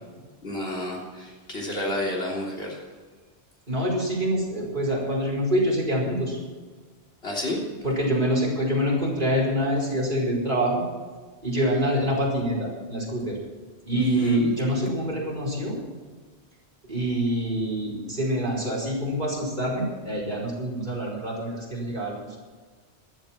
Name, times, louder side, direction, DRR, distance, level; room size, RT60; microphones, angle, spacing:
voice 1, 0.4-2.8 7.2-7.6 14.0-14.5, left 1 dB, 70° left, -2 dB, 3.8 m, -30 dB
voice 2, 3.7-6.4 7.8-10.8 11.4-13.4 13.9-15.8 16.9-22.4, equal, 45° right, -3 dB, 5.2 m, -26 dB
14.5 x 12.5 x 5.9 m, 1.4 s
omnidirectional pair, 1.1 m